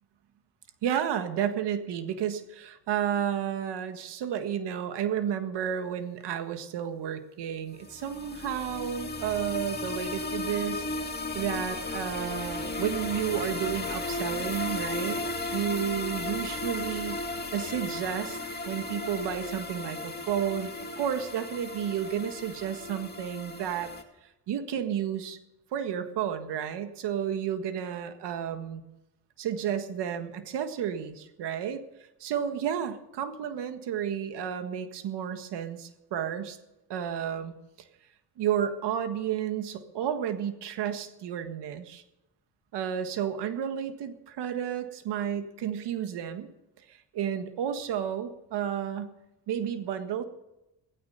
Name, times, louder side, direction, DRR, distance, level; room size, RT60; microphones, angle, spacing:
voice 1, 0.8-10.8 11.3-15.2 15.5-17.2 17.5-18.4 18.6-23.9 24.5-25.4 25.7-28.8 29.4-31.8 32.2-36.6 36.9-37.6 38.4-42.0 42.7-46.5 46.9-49.1 49.5-50.2, right 9 dB, 85° right, 8 dB, 1.7 m, -32 dB
sound 1, 7.8-24.0, left 2 dB, 25° left, 2.2 m, -35 dB
16.0 x 13.5 x 5.7 m, 0.91 s
cardioid pair, 85°, 40 cm